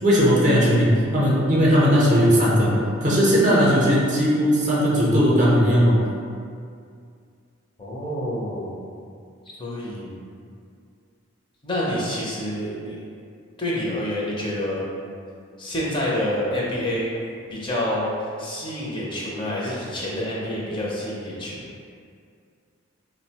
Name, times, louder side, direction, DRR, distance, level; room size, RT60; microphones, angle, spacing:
voice 1, 0.0-6.0, equal, 40° right, -5 dB, 0.5 m, -18 dB
voice 2, 7.8-8.7 9.6-10.1 11.6-13.0 13.6-14.9 15.6-17.1 17.5-21.6, left 1 dB, 25° left, -6 dB, 0.5 m, -27 dB
3.8 x 2.0 x 2.8 m, 2.3 s
head